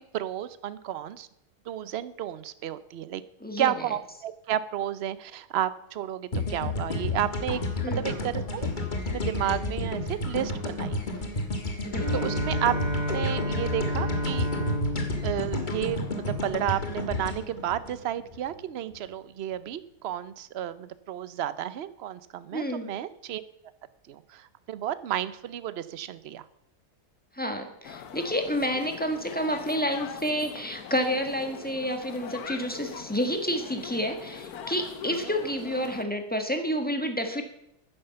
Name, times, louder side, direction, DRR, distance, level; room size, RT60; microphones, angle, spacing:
voice 1, 0.1-1.3 1.7-3.2 3.6-8.7 9.1-11.0 12.1-12.7 13.1-14.5 15.2-23.4 24.1-26.4 35.1-35.2, right 11 dB, 55° right, 15 dB, 0.7 m, -32 dB
voice 2, 3.4-3.7 7.8-8.1 11.8-12.3 22.5-22.9 27.3-37.4, equal, 5° left, 5 dB, 1.3 m, -29 dB
sound 1, 6.3-18.5, left 2 dB, 30° left, 1.6 m, -31 dB
Bowed string instrument, 11.9-16.7, equal, 30° right, 1.9 m, -32 dB
sound 2, 27.8-36.0, left 7 dB, 75° left, 1.4 m, -41 dB
10.0 x 9.9 x 6.8 m, 0.78 s
omnidirectional pair, 1.7 m